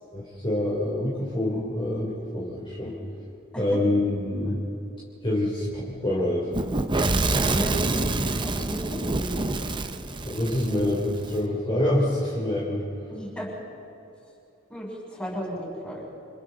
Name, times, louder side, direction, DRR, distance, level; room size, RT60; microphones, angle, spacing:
voice 1, 0.1-2.9 3.6-4.6 5.2-6.5 10.2-12.8, left 1 dB, 25° left, -6 dB, 3.3 m, -26 dB
Fire / Explosion, 6.5-11.4, right 2 dB, 20° right, 0.7 m, -27 dB
voice 2, 7.1-9.4 13.1-13.5 14.7-16.0, right 1 dB, 5° left, -5 dB, 6.6 m, -35 dB
30.0 x 26.5 x 4.0 m, 2.8 s
head